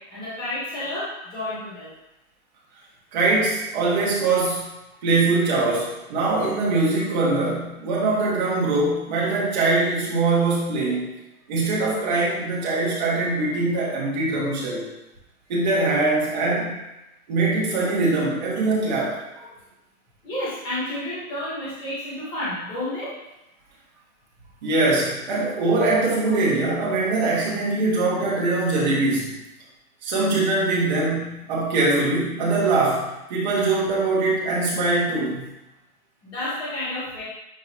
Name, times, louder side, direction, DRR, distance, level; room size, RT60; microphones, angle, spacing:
voice 1, 0.0-1.9 20.2-23.1 36.2-37.2, left 1 dB, 10° left, -9 dB, 1.4 m, -30 dB
voice 2, 3.1-4.7 5.0-11.1 11.5-14.9 15.5-16.8 17.3-19.5 24.6-29.4 30.0-35.4, right 3 dB, 30° right, -6 dB, 1.9 m, -22 dB
10.0 x 3.8 x 3.0 m, 0.93 s
hypercardioid pair, 175°, 44 cm